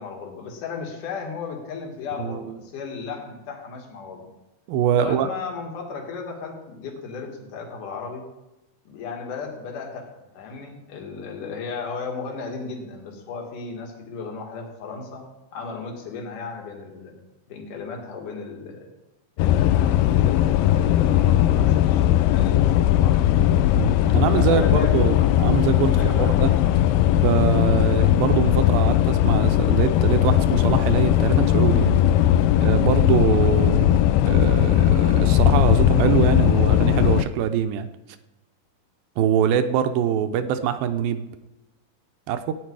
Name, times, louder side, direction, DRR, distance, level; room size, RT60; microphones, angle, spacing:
voice 1, 0.0-4.3 4.9-8.3 8.9-15.3 15.5-17.1 17.5-18.9 19.4-23.6 24.3-25.3 26.0-26.8, left 5 dB, 55° left, 1 dB, 3.4 m, -35 dB
voice 2, 2.2-2.5 4.7-5.3 23.8-26.5 27.1-32.0 32.6-34.0 34.3-37.9 39.2-41.3 42.3-42.5, right 8 dB, 75° right, 9 dB, 2.3 m, -23 dB
sound 1, 19.4-37.2, left 12 dB, 85° left, 2.0 m, -18 dB
17.5 x 9.6 x 4.8 m, 0.99 s
omnidirectional pair, 4.6 m